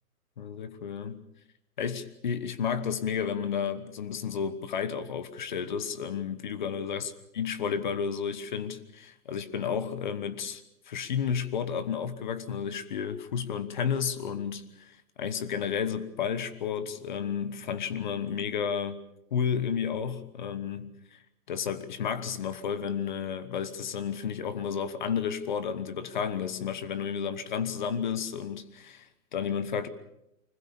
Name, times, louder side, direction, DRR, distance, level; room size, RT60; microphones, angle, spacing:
voice 1, 0.4-1.2 1.8-7.0 7.4-19.0 19.3-20.9 21.5-29.9, left 7 dB, 30° left, 1.2 m, -32 dB
24.5 x 20.5 x 7.0 m
hypercardioid pair, 180°, 45 cm